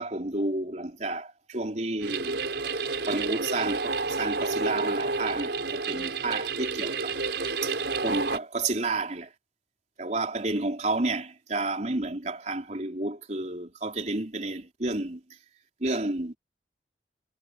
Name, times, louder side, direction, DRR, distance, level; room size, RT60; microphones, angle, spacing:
voice 1, 0.0-2.4 3.1-7.2 7.6-7.8 8.0-9.3 10.0-15.2 15.8-16.3, right 2 dB, 40° right, 3.9 m, -31 dB
sound 1, 2.0-8.4, right 3 dB, 75° right, 4.7 m, -30 dB
head